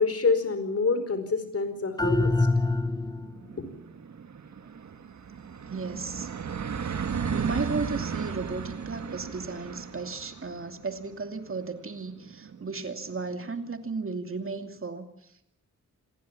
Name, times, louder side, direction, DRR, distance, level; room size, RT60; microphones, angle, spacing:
voice 1, 0.0-2.3, left 4 dB, 55° left, 10 dB, 4.8 m, -26 dB
sound 1, 1.5-1.6 1.9-2.0 2.2-13.7, right 6 dB, 70° right, 1.8 m, -36 dB
sound 2, 2.0-3.5, left 2 dB, 15° left, 1.1 m, -25 dB
voice 2, 4.1-4.9 5.3-5.4 5.7-6.3 7.3-15.5, right 4 dB, 45° right, 6 dB, 2.7 m, -35 dB
27.0 x 20.0 x 7.3 m, 0.75 s
wide cardioid pair, 110°, 29 cm